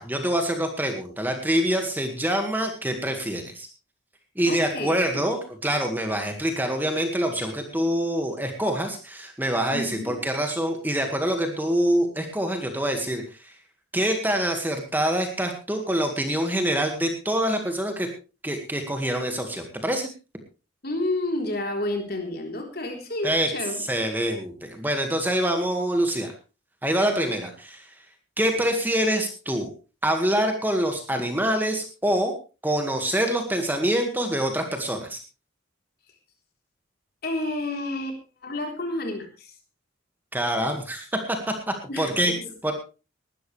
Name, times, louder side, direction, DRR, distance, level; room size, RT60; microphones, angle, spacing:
voice 1, 0.0-3.7 4.4-13.5 13.9-18.1 18.4-20.1 23.2-23.5 23.8-26.3 26.8-27.9 28.4-29.7 30.0-32.3 32.6-35.2 40.3-41.1 41.7-42.3 42.6-42.7, right 1 dB, 10° right, 4 dB, 1.9 m, -25 dB
voice 2, 4.5-5.3 9.7-10.2 20.8-23.8 27.1-27.3 37.2-39.5 41.9-42.4, left 1 dB, 50° left, 3 dB, 3.9 m, -30 dB
20.0 x 12.5 x 3.4 m, 0.32 s
head